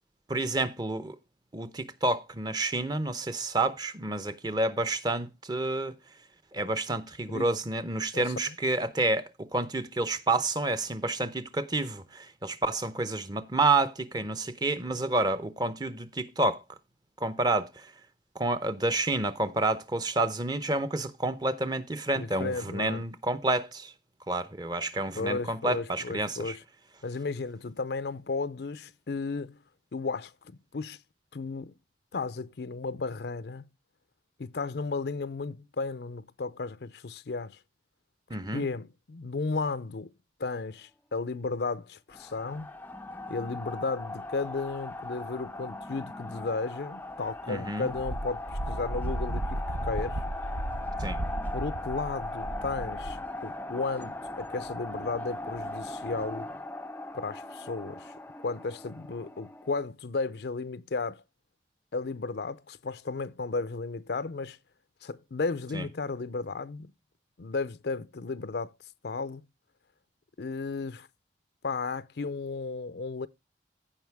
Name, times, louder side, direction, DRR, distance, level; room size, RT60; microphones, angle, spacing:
voice 1, 0.3-1.2 1.5-5.9 6.5-16.6 17.2-17.9 18.4-23.9 24.3-26.6 38.3-38.6 47.5-47.9 51.0-51.2 65.7-65.8, right 2 dB, 25° right, 0.7 m, -29 dB
voice 2, 8.1-8.5 22.1-23.0 25.2-26.6 27.0-29.6 29.9-31.0 31.3-31.7 32.1-33.7 34.4-37.6 38.5-40.1 40.4-42.7 43.3-50.2 51.5-56.5 57.1-58.1 58.4-61.2 61.9-64.6 65.0-66.9 67.4-68.7 69.0-69.4 70.4-71.1 71.6-73.3, left 4 dB, 65° left, 0.5 m, -34 dB
sound 1, 42.1-59.8, left 2 dB, 10° left, 0.4 m, -39 dB
Wind, 47.9-53.2, right 1 dB, 80° right, 0.8 m, -34 dB
15.5 x 5.2 x 3.4 m
head